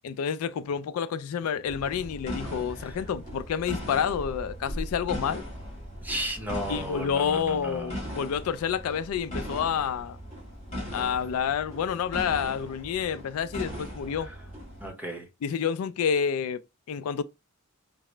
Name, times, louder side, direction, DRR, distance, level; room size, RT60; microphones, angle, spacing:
voice 1, 0.0-5.4 6.7-10.2 10.9-14.3 15.4-16.6 16.9-17.2, left 7 dB, 80° left, 0.3 m, -29 dB
sound 1, 1.7-14.9, equal, 30° left, 2.0 m, -38 dB
voice 2, 6.0-8.1 14.2-14.4 14.8-15.3, right 1 dB, 10° right, 0.9 m, -35 dB
4.7 x 2.0 x 3.1 m
head